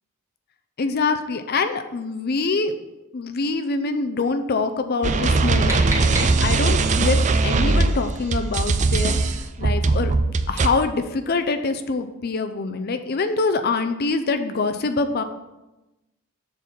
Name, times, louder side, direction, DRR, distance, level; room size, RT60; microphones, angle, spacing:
voice 1, 0.8-2.7 3.1-15.2, left 4 dB, 50° left, 8 dB, 0.5 m, -25 dB
sound 1, 5.0-10.7, right 3 dB, 35° right, 0.4 m, -20 dB
sound 2, 5.2-6.9, right 2 dB, 15° right, 1.5 m, -32 dB
7.1 x 4.2 x 5.9 m, 1.0 s
head